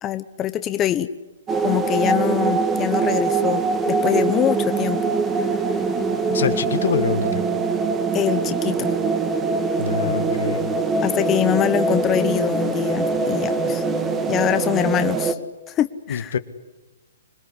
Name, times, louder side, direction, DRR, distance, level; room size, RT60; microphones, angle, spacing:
voice 1, 0.0-1.1 1.6-3.6 3.9-5.0 5.3-5.7 8.1-9.0 11.0-13.8 14.3-15.4 15.7-16.3, left 11 dB, 20° left, 11 dB, 0.8 m, -24 dB
sound 1, 1.5-15.3, right 4 dB, 15° right, 1.8 m, -23 dB
voice 2, 6.3-7.4 9.8-10.6 16.1-16.4, left 7 dB, 70° left, 12 dB, 1.7 m, -25 dB
26.0 x 20.5 x 9.9 m, 1.1 s
hypercardioid pair, 150°, 0 cm